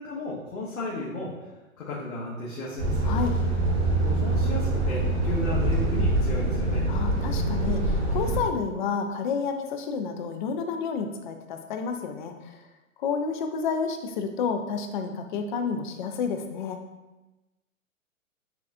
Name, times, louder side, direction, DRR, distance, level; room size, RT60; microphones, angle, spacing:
voice 1, 0.0-1.3 1.8-3.2 4.0-6.9, left 2 dB, 80° left, -6 dB, 1.1 m, -34 dB
Truck, 2.8-8.4, right 2 dB, 50° right, 1.2 m, -25 dB
voice 2, 6.9-12.6 13.0-16.8, left 5 dB, 40° left, 6 dB, 0.4 m, -30 dB
6.8 x 2.3 x 2.6 m, 1.1 s
hypercardioid pair, 125°, 41 cm